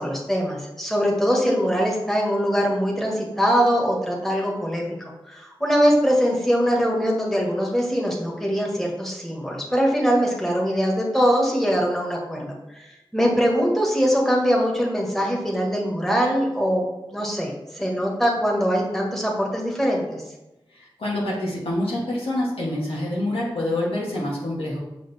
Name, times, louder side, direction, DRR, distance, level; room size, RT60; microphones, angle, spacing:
voice 1, 0.0-20.2, equal, 5° left, -2 dB, 1.7 m, -22 dB
voice 2, 20.7-24.8, left 1 dB, 85° left, -5 dB, 2.0 m, -26 dB
6.4 x 5.2 x 3.6 m, 0.99 s
cardioid pair, 50°, 10 cm